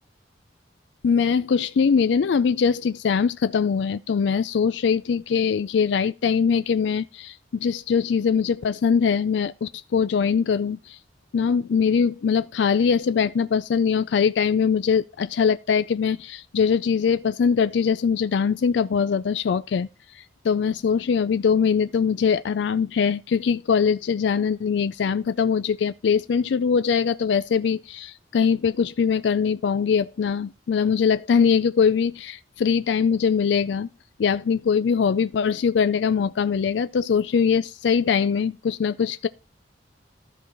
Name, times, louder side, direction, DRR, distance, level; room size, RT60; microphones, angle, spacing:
voice 1, 1.0-11.0 11.3-19.9 20.1-33.9 34.2-39.3, left 6 dB, 70° left, 0.4 m, -22 dB
13.5 x 4.7 x 3.9 m
head